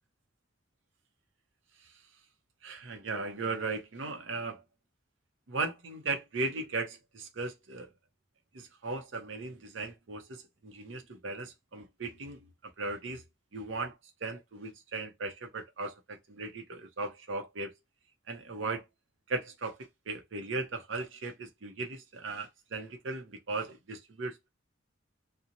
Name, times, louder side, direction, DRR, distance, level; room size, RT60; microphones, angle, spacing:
voice 1, 2.6-4.6 5.5-7.9 8.5-12.4 12.8-13.2 13.5-14.0 14.2-17.7 18.3-18.8 19.3-19.8 20.1-24.5, right 3 dB, 70° right, 0.6 m, -37 dB
2.8 x 2.1 x 2.5 m
head